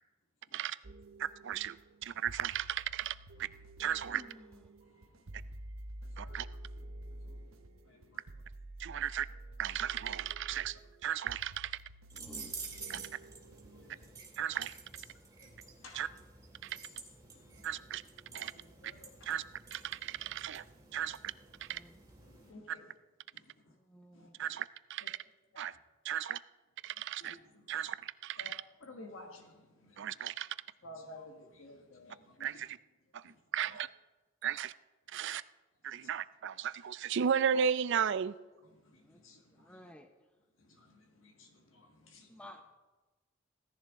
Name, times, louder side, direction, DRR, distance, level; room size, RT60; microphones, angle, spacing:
sound 1, 0.8-14.1, right 1 dB, 85° right, 0.8 m, -50 dB
voice 1, 1.2-3.5 3.8-4.2 6.2-6.5 8.8-9.3 9.6-10.8 11.0-11.8 12.9-13.0 14.4-14.7 15.9-16.1 16.6-16.8 17.6-18.0 18.3-18.5 19.2-19.4 19.7-20.6 20.9-21.2 21.6-21.8 24.4-25.2 25.6-25.7 26.0-26.4 26.8-27.4 27.7-28.6 30.0-30.5 32.4-32.8 33.1-33.9 34.4-34.7 35.1-35.4 35.8-38.4, right 8 dB, 60° right, 16 dB, 0.4 m, -35 dB
voice 2, 4.1-4.6 12.1-13.1 21.7-22.0 23.7-24.4 29.2-29.3 39.0-39.2 39.5-40.1 42.3-42.6, left 1 dB, 5° left, 5 dB, 0.6 m, -54 dB
voice 3, 4.8-5.1 6.0-6.4 7.1-7.5 7.9-8.2 8.9-9.0 12.9-13.0 13.6-14.1 14.5-14.6 15.4-15.5 15.8-16.1 17.3-17.7 18.3-19.4 20.9-21.0 22.2-22.9 23.3-23.7 24.1-24.5 25.0-25.1 27.2-27.8 28.4-28.5 28.8-30.1 30.8-32.6 33.2-33.4 35.9-36.1 38.7-39.9 40.6-42.3, left 2 dB, 70° left, 3 dB, 1.5 m, -55 dB
sound 2, 12.1-22.5, right 4 dB, 15° right, 2.6 m, -50 dB
16.5 x 14.0 x 3.7 m, 1.2 s
head